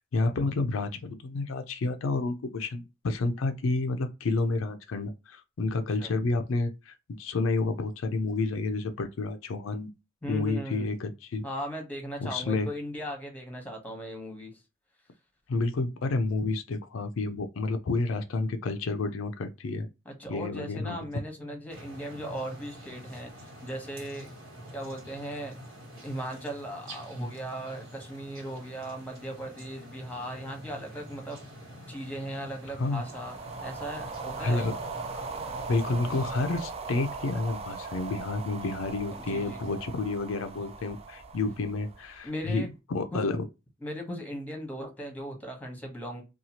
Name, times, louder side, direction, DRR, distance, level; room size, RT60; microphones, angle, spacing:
voice 1, 0.0-9.9 10.3-11.4 12.2-12.7 15.5-19.9 20.3-21.1 32.8-33.0 34.4-34.7 35.1-35.3 35.7-43.5, left 3 dB, 75° left, 0.4 m, -30 dB
voice 2, 10.2-10.9 11.4-14.5 20.0-24.3 24.7-25.5 26.0-31.4 31.9-33.3 33.6-34.7 39.1-39.7 42.2-42.7 43.1-43.2 43.8-46.2, equal, 10° left, 1.0 m, -38 dB
sound 1, 21.7-36.4, equal, 70° right, 1.4 m, -46 dB
sound 2, 32.9-42.4, right 4 dB, 30° right, 0.4 m, -39 dB
2.8 x 2.3 x 2.8 m
head